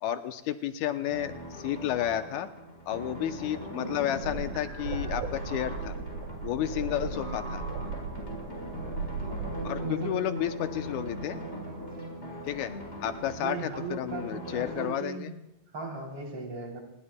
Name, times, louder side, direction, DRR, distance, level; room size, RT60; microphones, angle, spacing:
voice 1, 0.0-2.5 2.9-6.0 6.4-7.6 9.6-11.4 12.4-12.7 13.0-15.3, left 11 dB, 80° left, 9 dB, 2.1 m, -31 dB
sound 1, 1.1-14.9, equal, 20° left, 4.3 m, -42 dB
sound 2, 3.0-12.5, equal, 25° right, 3.7 m, -41 dB
sound 3, 4.2-9.7, right 4 dB, 80° right, 3.7 m, -37 dB
voice 2, 9.7-10.2 13.4-15.4 15.7-16.8, right 3 dB, 45° right, 0 dB, 4.0 m, -37 dB
29.5 x 20.0 x 2.2 m, 0.93 s
omnidirectional pair, 3.4 m